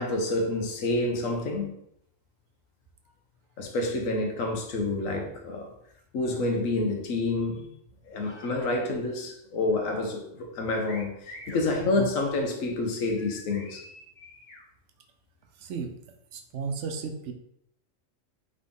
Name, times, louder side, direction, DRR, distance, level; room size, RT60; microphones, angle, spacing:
voice 1, 0.0-1.7 3.6-5.7 6.1-7.6 8.1-13.8, left 2 dB, 90° left, 1.2 m, -28 dB
sound 1, 10.8-11.6 13.2-14.6, left 2 dB, 70° left, 1.4 m, -46 dB
voice 2, 11.8-12.1 15.6-15.9 16.3-17.3, right 5 dB, 70° right, 0.9 m, -34 dB
3.9 x 3.5 x 3.5 m
omnidirectional pair, 1.4 m